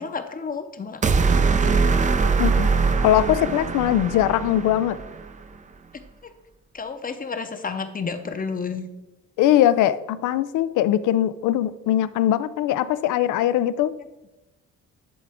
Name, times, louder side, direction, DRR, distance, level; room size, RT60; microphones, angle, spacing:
voice 1, 0.0-1.9 6.2-6.3 6.7-8.9, left 5 dB, 30° left, 9 dB, 0.7 m, -32 dB
sound 1, 1.0-5.3, right 4 dB, 25° right, 0.4 m, -22 dB
voice 2, 3.0-5.0 9.4-13.9, left 12 dB, 85° left, 15 dB, 0.4 m, -21 dB
10.5 x 3.7 x 3.5 m, 0.98 s
cardioid pair, 90°, 30 cm